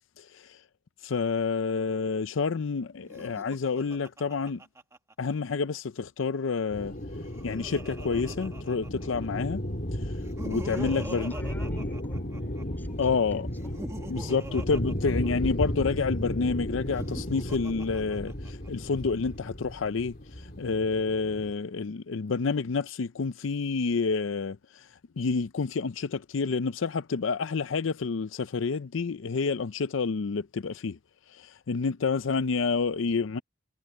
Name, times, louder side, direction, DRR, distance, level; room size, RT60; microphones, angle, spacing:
voice 1, 1.0-4.6 5.2-6.9 7.4-9.6 10.4-11.3 13.0-13.5 14.1-20.2 20.6-24.6 25.2-31.0 31.3-33.4, left 4 dB, 85° left, 0.5 m, -29 dB
Laughter, 3.0-5.5 6.9-9.3 10.1-12.6 13.5-15.9 16.8-18.7, right 1 dB, 15° right, 1.4 m, -43 dB
sound 1, 6.7-21.5, equal, 50° left, 3.0 m, -34 dB
voice 2, 10.7-13.7 14.2-14.4, equal, 10° left, 3.7 m, -48 dB
head